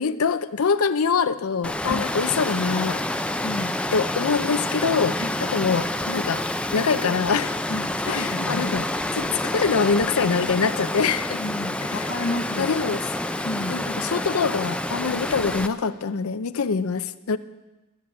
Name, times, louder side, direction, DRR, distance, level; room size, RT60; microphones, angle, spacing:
voice 1, 0.0-3.0 3.9-6.4 6.7-7.5 8.1-8.9 9.1-11.4 11.8-12.1 12.6-13.2 13.7-17.4, left 5 dB, 80° left, 12 dB, 0.5 m, -24 dB
Water, 1.6-15.7, left 1 dB, 5° left, 0.4 m, -28 dB
voice 2, 3.4-3.8 5.2-5.5 7.7-8.8 9.1-9.2 11.4-12.7 13.4-13.8, left 2 dB, 55° left, -1 dB, 0.9 m, -31 dB
13.0 x 7.4 x 9.5 m, 1.0 s
head